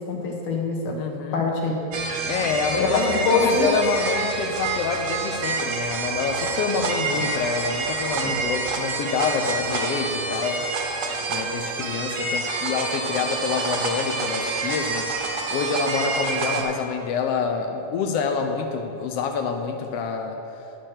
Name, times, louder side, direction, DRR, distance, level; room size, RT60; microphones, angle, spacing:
voice 1, 0.0-1.0 1.3-2.1 2.8-3.7, left 3 dB, 55° left, 1 dB, 1.6 m, -24 dB
voice 2, 1.0-1.5 2.3-10.6 11.3-15.1 15.5-20.4, left 5 dB, 90° left, 4 dB, 1.3 m, -27 dB
sound 1, 1.9-16.6, right 3 dB, 70° right, 1.2 m, -27 dB
10.0 x 6.0 x 6.5 m, 2.8 s
omnidirectional pair, 3.5 m